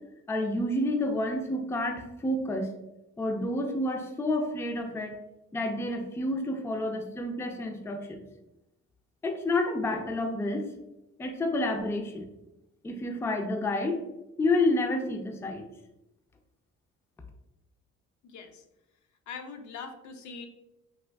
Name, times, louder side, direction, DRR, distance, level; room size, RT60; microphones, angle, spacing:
voice 1, 0.3-2.7 3.2-5.2 5.5-8.2 9.2-10.7 11.2-12.3 12.8-14.0 14.4-15.6, left 1 dB, 10° left, 4 dB, 0.3 m, -29 dB
voice 2, 18.2-18.6 19.3-20.5, left 5 dB, 70° left, 5 dB, 0.5 m, -42 dB
3.4 x 2.5 x 2.2 m, 0.90 s
cardioid pair, 90°, 30 cm